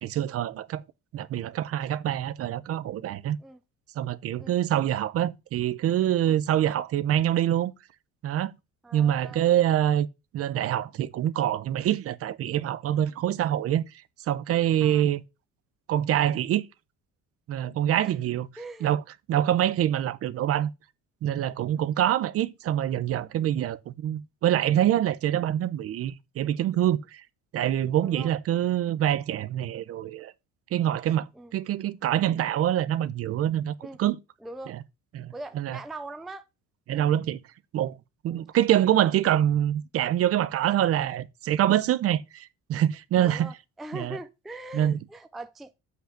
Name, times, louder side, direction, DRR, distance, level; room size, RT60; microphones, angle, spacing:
voice 1, 0.0-0.8 1.1-3.4 4.0-7.7 8.2-8.5 8.9-10.1 10.3-13.8 14.3-15.2 15.9-16.7 17.5-18.5 18.8-19.0 19.3-20.7 21.2-27.2 27.5-30.3 30.7-33.7 34.0-34.2 34.7-34.8 35.1-35.8 36.9-37.4 37.7-38.0 38.2-43.5 43.9-44.2 44.7-45.0, right 11 dB, 45° right, 0.7 m, -25 dB
voice 2, 8.8-9.4 14.8-15.0 18.0-18.1 18.6-18.9 28.0-28.3 31.4-31.5 33.8-34.0 34.4-34.8 35.3-36.5 36.9-37.1 38.3-38.4 43.2-45.7, right 2 dB, ahead, 0.4 m, -41 dB
8.1 x 5.5 x 5.0 m
cardioid pair, 180°, 32 cm